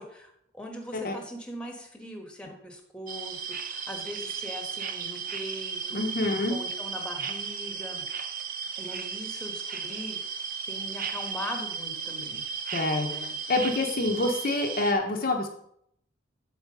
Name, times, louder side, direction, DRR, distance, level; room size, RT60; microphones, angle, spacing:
voice 1, 0.0-6.0 6.3-8.0 8.8-10.4 10.7-12.4 13.0-13.3, equal, 5° left, 2 dB, 1.3 m, -40 dB
sound 1, 3.1-14.9, right 6 dB, 45° right, 0.7 m, -35 dB
voice 2, 5.9-6.6 12.7-13.1 13.5-15.5, left 2 dB, 45° left, 2 dB, 0.9 m, -26 dB
8.3 x 4.3 x 6.7 m, 0.71 s
head